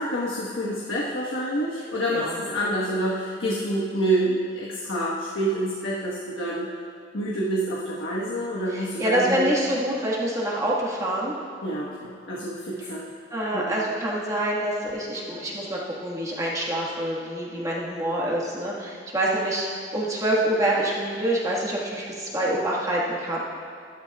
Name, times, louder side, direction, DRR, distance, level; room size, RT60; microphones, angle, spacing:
voice 1, 0.0-6.7 7.1-9.5 11.6-13.1 13.5-13.8, right 1 dB, 90° left, -6 dB, 1.4 m, -27 dB
voice 2, 8.7-11.3 13.3-19.7 19.9-23.4, right 1 dB, 20° right, -5 dB, 1.6 m, -26 dB
13.0 x 12.0 x 2.4 m, 2.5 s
head